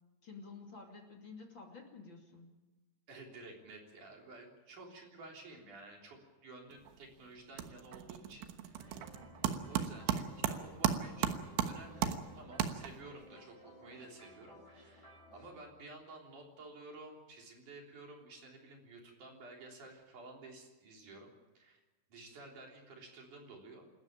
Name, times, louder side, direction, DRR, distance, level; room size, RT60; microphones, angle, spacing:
voice 1, 0.2-2.5, left 4 dB, 30° left, 1 dB, 2.5 m, -51 dB
voice 2, 3.1-9.2 9.5-21.3 21.5-21.8 22.1-23.9, right 2 dB, 45° right, 1 dB, 4.7 m, -53 dB
sound 1, 6.7-7.1 7.4-13.2, right 9 dB, 75° right, 3.4 m, -36 dB
sound 2, 8.7-15.5, equal, 5° left, 7.7 m, -57 dB
27.5 x 13.5 x 8.9 m, 1.1 s
omnidirectional pair, 5.4 m